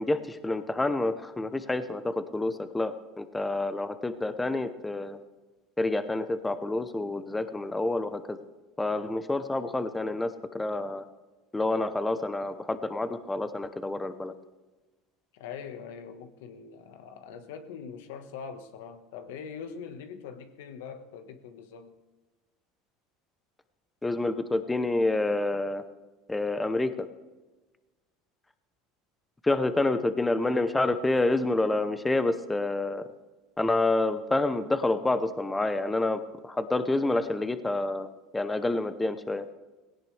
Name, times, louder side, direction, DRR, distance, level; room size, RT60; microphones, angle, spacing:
voice 1, 0.0-5.2 5.8-8.4 8.8-11.0 11.5-14.3 24.0-25.8 26.3-27.1 29.4-33.1 33.6-38.1 38.3-39.5, left 2 dB, 10° left, 11 dB, 0.8 m, -28 dB
voice 2, 15.3-22.0, left 6 dB, 85° left, 8 dB, 1.4 m, -42 dB
18.0 x 17.0 x 3.4 m, 1.2 s
supercardioid pair, 125°, 0 cm